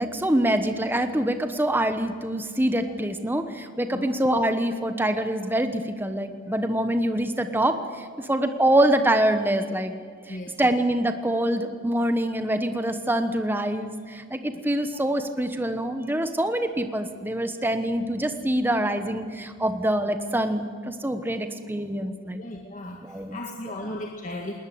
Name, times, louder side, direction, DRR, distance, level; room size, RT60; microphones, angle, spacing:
voice 1, 0.0-9.9 10.2-22.4 23.0-23.4 23.8-23.9, right 1 dB, 10° right, 8 dB, 1.1 m, -25 dB
voice 2, 10.3-10.8 14.9-15.0 22.4-24.5, left 1 dB, 40° left, 1 dB, 1.8 m, -36 dB
20.5 x 20.0 x 7.9 m, 2.2 s
head